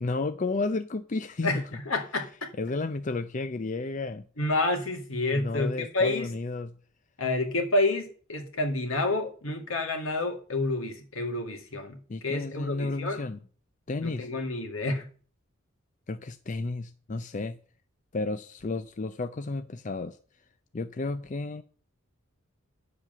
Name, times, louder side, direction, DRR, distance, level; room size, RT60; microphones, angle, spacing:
voice 1, 0.0-1.6 2.6-4.2 5.3-6.8 12.1-13.4 13.9-14.3 16.1-17.6 18.1-20.2 20.7-21.6, left 3 dB, 35° left, 0.5 m, -32 dB
voice 2, 1.4-2.5 4.4-6.3 7.2-13.2 14.0-15.1, left 2 dB, 80° left, 2.2 m, -29 dB
9.9 x 7.5 x 6.7 m
head